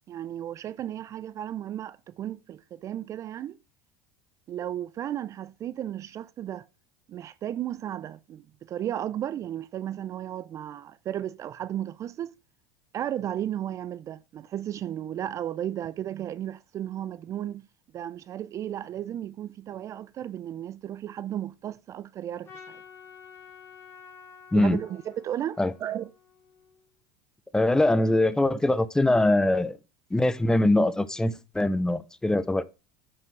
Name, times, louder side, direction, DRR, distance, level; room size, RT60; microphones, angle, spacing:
voice 1, 0.1-3.6 4.5-6.6 7.1-12.3 12.9-17.6 17.9-22.8 24.5-26.1 28.5-28.6 29.1-29.2, right 11 dB, 35° right, 0.4 m, -34 dB
Trumpet, 22.4-26.8, left 6 dB, 30° left, 3.2 m, -50 dB
voice 2, 27.5-29.8 30.1-32.6, left 1 dB, 5° left, 0.6 m, -23 dB
9.4 x 6.2 x 4.5 m
supercardioid pair, 115°, 9 cm